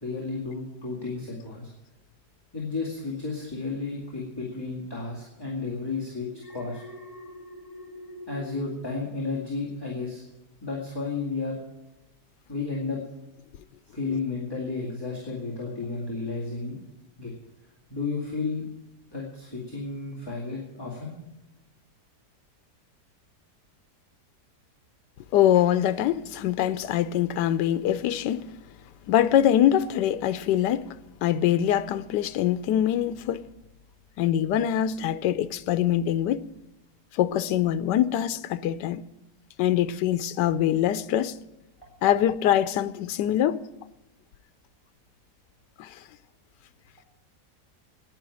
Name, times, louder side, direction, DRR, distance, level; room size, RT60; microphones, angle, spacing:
voice 1, 0.0-1.7 2.5-6.8 8.3-10.2 10.6-11.6 12.5-13.0 13.9-16.8 17.2-17.3 17.9-18.6 19.1-21.2, left 4 dB, 15° left, 2.3 m, -32 dB
Alarm, 6.3-9.6 10.0-10.4, left 1 dB, 45° left, 3.7 m, -44 dB
voice 2, 25.3-28.5 29.1-30.9 31.2-33.5 34.2-36.4 37.2-39.0 39.6-41.4 42.0-43.6 45.8-45.9, left 11 dB, 90° left, 1.3 m, -23 dB
10.5 x 9.6 x 9.8 m
omnidirectional pair, 1.8 m